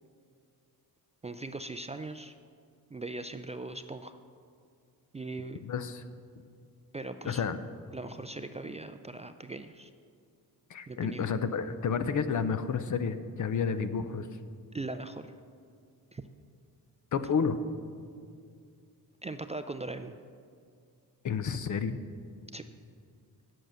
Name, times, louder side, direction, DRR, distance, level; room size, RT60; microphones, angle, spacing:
voice 1, 1.2-2.3 2.9-4.1 5.1-5.6 6.9-7.4 7.9-9.9 10.9-11.3 14.7-15.3 16.1-16.2 19.2-20.2 22.5-22.6, right 2 dB, 20° right, 9 dB, 0.3 m, -40 dB
voice 2, 5.6-6.0 7.2-7.6 10.7-14.3 17.1-17.6 21.2-22.0, left 6 dB, 50° left, 11 dB, 0.6 m, -30 dB
8.9 x 7.8 x 6.3 m, 2.2 s
cardioid pair, 85°, 38 cm